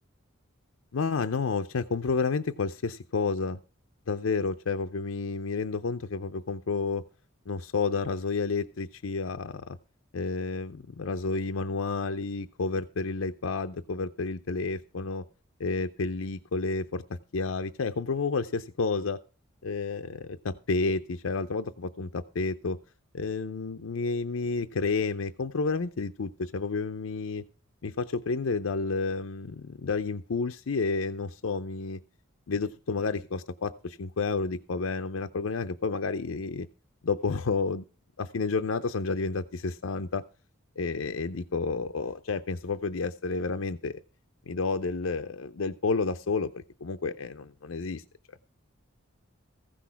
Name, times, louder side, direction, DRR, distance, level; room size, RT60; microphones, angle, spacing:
voice 1, 0.9-3.6 4.1-7.0 7.5-9.8 10.1-15.2 15.6-19.2 19.6-22.8 23.1-27.4 27.8-32.0 32.5-36.7 37.0-37.8 38.2-40.2 40.8-44.0 44.5-48.0, left 4 dB, 80° left, 8 dB, 0.6 m, -30 dB
15.0 x 6.2 x 5.7 m, 0.35 s
head